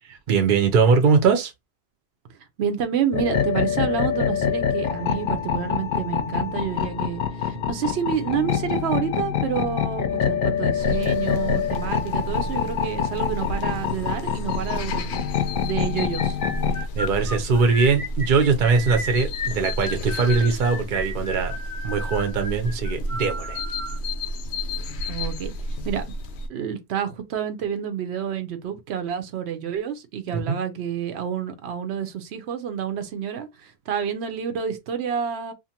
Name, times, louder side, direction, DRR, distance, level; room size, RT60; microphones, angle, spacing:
voice 1, 0.3-1.5 17.0-21.5 21.8-23.6 30.3-30.6, right 5 dB, 55° right, 0.8 m, -21 dB
voice 2, 2.6-15.2 15.6-16.4 25.1-25.5 25.8-26.0 26.5-35.5, right 8 dB, 85° right, 0.9 m, -29 dB
sound 1, 3.1-16.8, left 8 dB, 60° left, 0.7 m, -25 dB
sound 2, 10.8-26.5, equal, 85° left, 0.8 m, -32 dB
sound 3, 15.9-24.0, left 1 dB, 35° left, 0.3 m, -34 dB
2.6 x 2.4 x 2.8 m
omnidirectional pair, 1.1 m